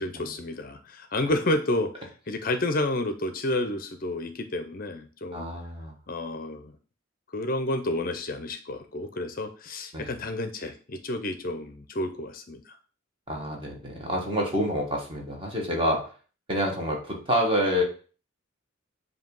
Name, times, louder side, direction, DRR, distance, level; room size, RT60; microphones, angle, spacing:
voice 1, 0.0-5.4 6.1-6.7 7.3-12.8, left 1 dB, 40° left, 8 dB, 0.5 m, -30 dB
voice 2, 5.3-5.9 9.9-10.2 13.3-16.1 16.5-17.8, equal, 25° right, 0 dB, 1.4 m, -27 dB
7.7 x 2.7 x 5.3 m, 0.39 s
head